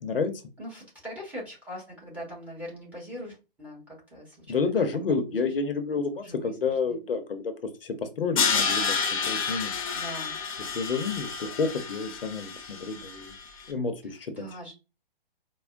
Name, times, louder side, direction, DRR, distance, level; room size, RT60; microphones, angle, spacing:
voice 1, 0.0-0.3 4.5-7.5 7.8-9.8 10.6-13.3 13.7-14.5, left 4 dB, 70° left, 9 dB, 0.7 m, -30 dB
voice 2, 0.6-5.3 6.2-7.0 9.9-10.4 14.0-14.7, equal, 5° right, -3 dB, 1.1 m, -42 dB
Crash cymbal, 8.4-13.4, left 5 dB, 35° left, 0.7 m, -29 dB
4.4 x 2.1 x 2.4 m, 0.30 s
figure-of-eight pair, 130°, 29 cm